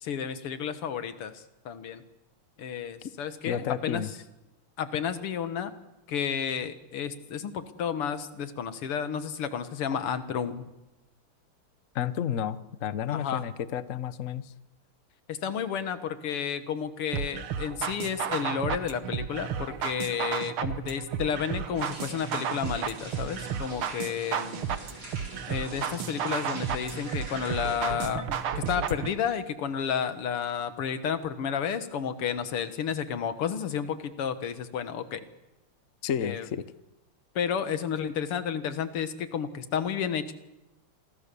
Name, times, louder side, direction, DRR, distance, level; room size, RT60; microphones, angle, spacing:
voice 1, 0.0-2.0 2.6-4.0 4.8-5.7 6.1-10.6 13.1-13.4 15.3-24.7 25.5-28.3 28.6-35.2 36.2-36.5 37.4-40.3, left 8 dB, 85° left, 11 dB, 2.4 m, -31 dB
voice 2, 3.4-4.1 11.9-14.5 36.0-36.6, left 9 dB, 50° left, 14 dB, 1.0 m, -31 dB
sound 1, 17.1-29.1, right 8 dB, 75° right, 2.1 m, -33 dB
sound 2, 21.8-27.8, right 2 dB, 45° right, 5.4 m, -45 dB
27.5 x 21.5 x 7.0 m, 0.98 s
omnidirectional pair, 2.4 m